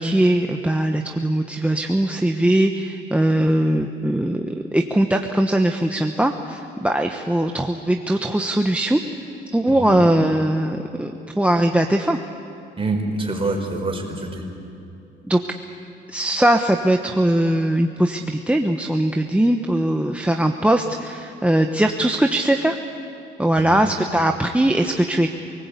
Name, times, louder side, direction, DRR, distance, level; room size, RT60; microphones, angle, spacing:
voice 1, 0.0-9.0 9.5-12.2 15.2-15.4 16.1-22.8 23.4-25.3, right 1 dB, 5° right, 3 dB, 1.2 m, -20 dB
voice 2, 9.7-10.0 12.8-14.4 23.6-23.8, right 2 dB, 25° right, 2 dB, 5.1 m, -26 dB
27.0 x 19.5 x 8.4 m, 2.8 s
cardioid pair, 90°, 20 cm